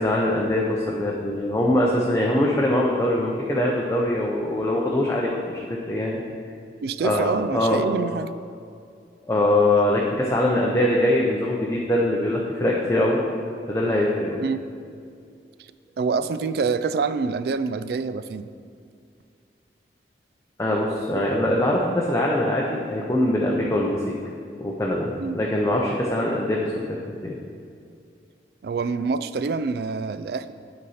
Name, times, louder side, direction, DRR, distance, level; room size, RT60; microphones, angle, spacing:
voice 1, 0.0-6.2 7.0-7.8 9.3-13.2 13.7-14.4 20.6-23.9 24.6-27.3, left 1 dB, 15° left, -3 dB, 0.6 m, -23 dB
voice 2, 6.8-8.3 14.4-14.7 16.0-18.5 25.2-25.4 28.6-30.5, right 4 dB, 60° right, 14 dB, 0.3 m, -26 dB
9.3 x 4.1 x 5.6 m, 2.4 s
head